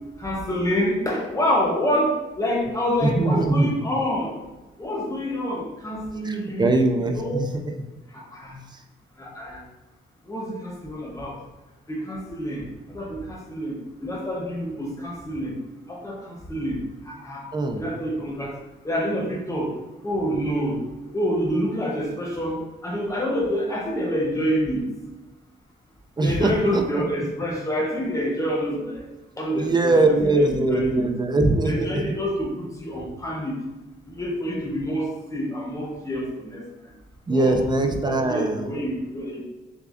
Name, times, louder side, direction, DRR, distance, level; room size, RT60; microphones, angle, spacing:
voice 1, 0.2-4.3 4.8-6.7 7.1-7.5 8.1-8.6 9.2-9.6 10.2-11.4 11.9-15.6 15.9-17.4 17.7-18.5 18.8-19.8 20.0-20.8 21.1-24.9 26.2-29.0 29.4-31.1 31.6-33.6 34.0-36.9 37.3-37.6 38.0-39.4, equal, 15° left, -2 dB, 0.8 m, -27 dB
voice 2, 3.0-3.7 6.2-7.6 8.7-8.8 17.5-17.8 26.2-27.0 29.6-32.0 37.3-38.7, right 2 dB, 20° right, 4 dB, 0.3 m, -22 dB
6.7 x 2.3 x 2.4 m, 1.1 s
wide cardioid pair, 155°, 21 cm